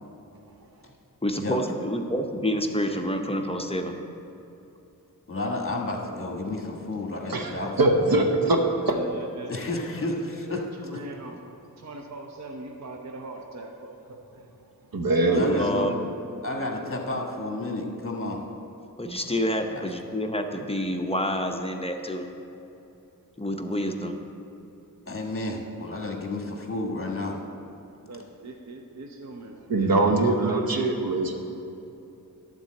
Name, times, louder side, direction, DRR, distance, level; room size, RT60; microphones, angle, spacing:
voice 1, 1.2-3.9 15.3-15.9 19.0-22.3 23.4-24.1, equal, 15° left, 4 dB, 0.7 m, -28 dB
voice 2, 5.3-8.2 9.5-10.6 15.3-15.9 16.4-18.4 19.7-19.8 25.1-27.4, left 2 dB, 35° left, 1 dB, 1.4 m, -31 dB
voice 3, 7.3-8.6 8.9-9.0 14.9-15.6 29.7-31.4, right 2 dB, 80° right, 3 dB, 1.1 m, -22 dB
voice 4, 8.9-9.6 9.9-11.4 11.8-14.5 25.7-25.8 28.1-31.0, right 2 dB, 50° right, 2 dB, 0.7 m, -41 dB
12.0 x 4.1 x 7.6 m, 2.8 s
wide cardioid pair, 80°, 35 cm